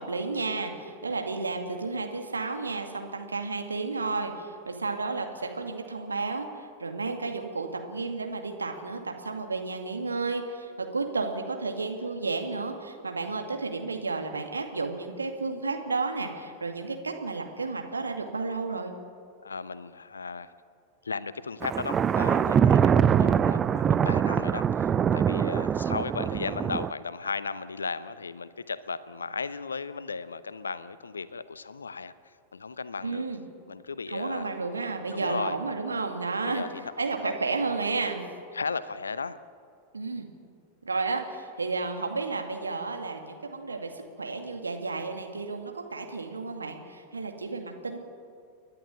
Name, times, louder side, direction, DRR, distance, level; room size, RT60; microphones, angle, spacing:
voice 1, 0.0-18.9 33.0-33.4 34.1-36.6 37.0-38.2 39.9-40.3 40.8-48.0, right 3 dB, 75° right, 4 dB, 2.3 m, -32 dB
voice 2, 19.4-20.5 21.0-33.2 33.7-34.5 35.1-35.6 36.4-37.3 38.5-39.4, left 4 dB, 75° left, 15 dB, 0.8 m, -36 dB
Thunder, 21.6-26.9, right 8 dB, 25° right, 0.5 m, -23 dB
29.5 x 11.0 x 9.1 m, 2.3 s
figure-of-eight pair, 90°, 0 cm